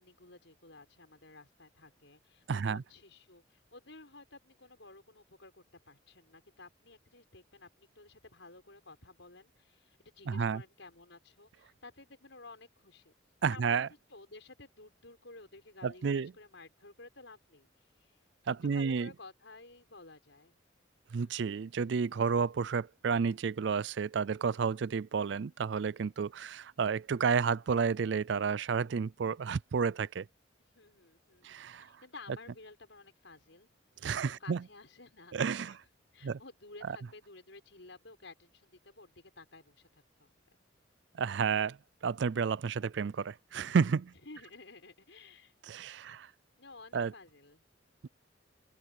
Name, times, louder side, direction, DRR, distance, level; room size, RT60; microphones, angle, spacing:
voice 1, 0.0-13.1 13.5-13.7 14.1-18.2 18.6-20.5 21.2-21.6 30.6-33.7 34.4-35.4 35.6-35.8 36.1-40.3 44.2-45.5 46.0-46.1 46.6-47.6, left 3 dB, 75° left, 5.6 m, -54 dB
voice 2, 2.5-2.8 10.3-10.6 13.4-13.9 15.8-16.3 18.5-19.1 21.1-30.3 31.4-31.9 34.0-34.6 35.3-35.8 36.2-36.4 36.9-37.0 41.2-41.8 42.0-44.1 45.7-46.3 46.9-47.1 48.0-48.1, right 6 dB, 65° right, 0.4 m, -31 dB
open air
head